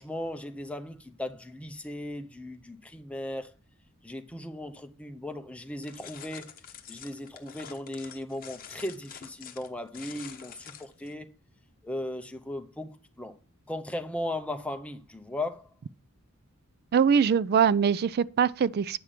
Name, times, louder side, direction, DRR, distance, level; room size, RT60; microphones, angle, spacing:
voice 1, 0.0-3.5 4.0-6.5 6.9-11.3 11.8-13.4 13.7-15.7, left 1 dB, 5° left, 0.7 m, -37 dB
sound 1, 5.8-11.1, left 8 dB, 40° left, 0.9 m, -47 dB
voice 2, 16.9-19.0, right 7 dB, 45° right, 0.3 m, -23 dB
8.6 x 5.9 x 4.9 m
head